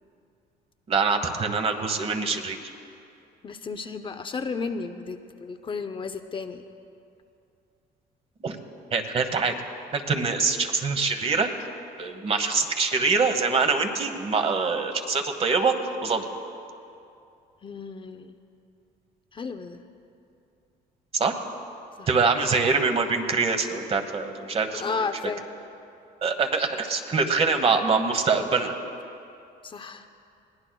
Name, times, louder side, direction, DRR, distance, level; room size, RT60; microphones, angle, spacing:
voice 1, 0.9-2.6 8.4-8.6 8.9-9.5 9.9-11.5 12.0-15.7 16.0-16.3 21.1-21.3 22.1-25.1 26.2-28.7, right 4 dB, 35° right, 6 dB, 1.1 m, -24 dB
voice 2, 3.4-6.6 17.6-18.4 19.3-19.8 22.0-22.1 24.7-25.4 29.6-30.0, left 4 dB, 30° left, 8 dB, 0.6 m, -33 dB
22.0 x 17.5 x 2.3 m, 2.6 s
cardioid pair, 110°, 17 cm